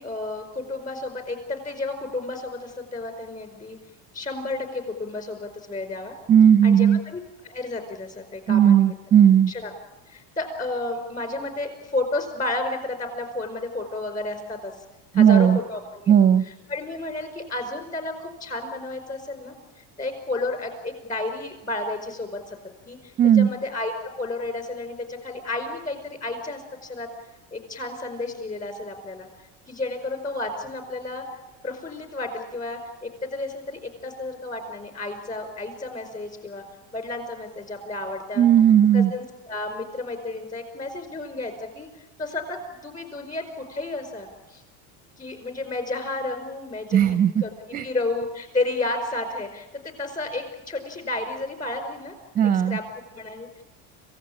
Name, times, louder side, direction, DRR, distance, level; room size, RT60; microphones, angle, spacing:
voice 1, 0.0-3.8 4.1-6.1 6.6-8.9 9.5-9.7 10.1-14.7 15.1-16.1 16.7-19.5 20.0-22.6 22.9-23.0 23.4-27.1 27.5-29.3 29.7-31.2 31.6-36.6 36.9-38.5 38.9-41.9 42.2-44.6 45.2-47.5 47.8-52.1 52.7-52.9 53.1-53.5, left 2 dB, 20° left, 7 dB, 4.8 m, -32 dB
voice 2, 6.3-7.0 8.5-9.5 15.1-15.6 16.1-16.4 23.2-23.5 38.4-39.1 46.9-47.4 47.7-47.9 52.3-52.8, right 9 dB, 25° right, 10 dB, 0.7 m, -16 dB
26.5 x 17.0 x 8.8 m, 1.0 s
cardioid pair, 150°, 37 cm